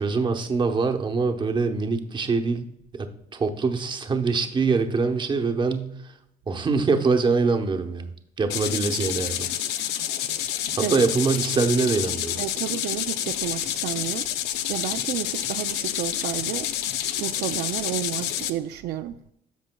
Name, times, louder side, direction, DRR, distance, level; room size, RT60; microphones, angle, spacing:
voice 1, 0.0-6.1 6.5-9.5 10.9-12.4, right 4 dB, 30° right, 0.9 m, -24 dB
sound 1, 8.5-18.5, left 11 dB, 90° left, 0.5 m, -28 dB
voice 2, 12.4-14.3 14.7-16.7 17.2-19.2, right 12 dB, 75° right, 0.4 m, -31 dB
14.0 x 5.0 x 2.2 m
cardioid pair, 110°, 17 cm